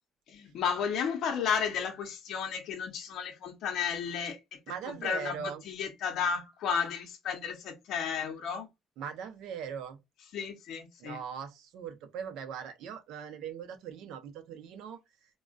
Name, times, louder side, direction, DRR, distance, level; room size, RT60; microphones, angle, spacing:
voice 1, 0.3-4.4 4.9-8.7 10.3-11.2, left 7 dB, 60° left, 0.8 m, -33 dB
voice 2, 4.7-5.6 9.0-10.0 11.0-15.0, right 7 dB, 75° right, 0.7 m, -40 dB
3.6 x 2.3 x 2.4 m
cardioid pair, 140°, 0 cm